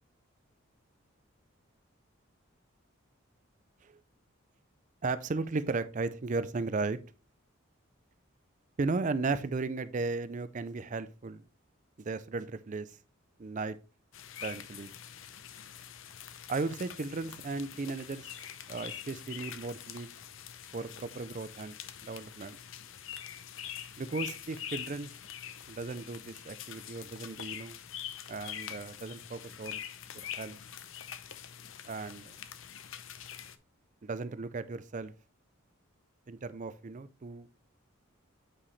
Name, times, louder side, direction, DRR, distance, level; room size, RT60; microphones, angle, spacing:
voice 1, 5.0-7.0 8.8-11.4 12.0-13.0 13.4-13.8 14.4-14.9 16.5-18.4 18.7-20.1 20.7-21.7 22.0-22.6 24.0-25.1 25.7-27.8 28.3-29.8 30.3-30.6 31.8-32.4 34.0-35.1 36.3-37.5, right 3 dB, 35° right, 0.4 m, -35 dB
sound 1, 14.1-33.6, left 9 dB, 70° left, 0.6 m, -45 dB
8.6 x 4.9 x 3.2 m
head